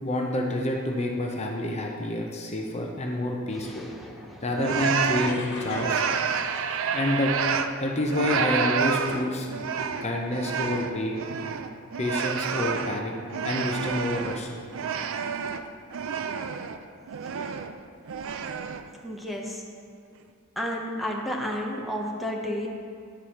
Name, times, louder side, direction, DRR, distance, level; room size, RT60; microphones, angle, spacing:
voice 1, 0.0-3.9 4.4-6.0 6.9-7.3 7.8-9.5 10.0-11.2 12.0-13.1 13.4-14.6, left 1 dB, 30° left, 0 dB, 0.8 m, -28 dB
voice 2, 3.5-4.8 17.3-17.5 19.0-19.6 20.6-22.7, equal, ahead, -2 dB, 0.9 m, -33 dB
sound 1, 4.6-7.8 8.1-14.4 14.7-16.8 17.1-17.8 18.1-18.9, right 6 dB, 65° right, 0.4 m, -29 dB
sound 2, 5.2-7.5, left 3 dB, 55° left, 1.1 m, -41 dB
10.0 x 4.7 x 5.7 m, 2.3 s
head